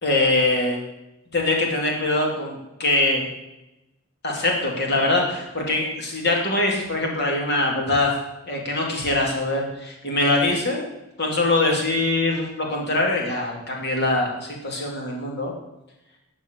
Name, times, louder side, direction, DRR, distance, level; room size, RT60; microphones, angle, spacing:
voice 1, 0.0-0.8 1.3-3.3 4.2-8.1 8.5-10.9 11.2-15.5, left 2 dB, 45° left, 0 dB, 2.8 m, -23 dB
13.0 x 5.4 x 8.1 m, 0.92 s
head